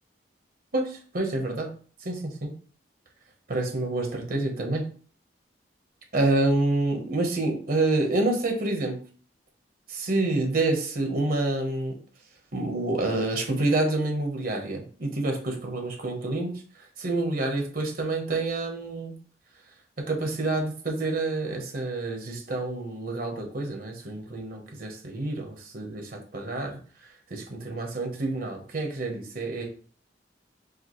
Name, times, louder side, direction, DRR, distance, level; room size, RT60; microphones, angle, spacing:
voice 1, 0.7-1.7 2.0-2.5 3.5-4.8 6.1-9.0 9.9-12.0 12.5-16.6 17.0-19.1 20.1-26.8 27.3-29.7, right 2 dB, 55° right, 3 dB, 1.0 m, -28 dB
4.9 x 2.5 x 3.1 m, 0.42 s
head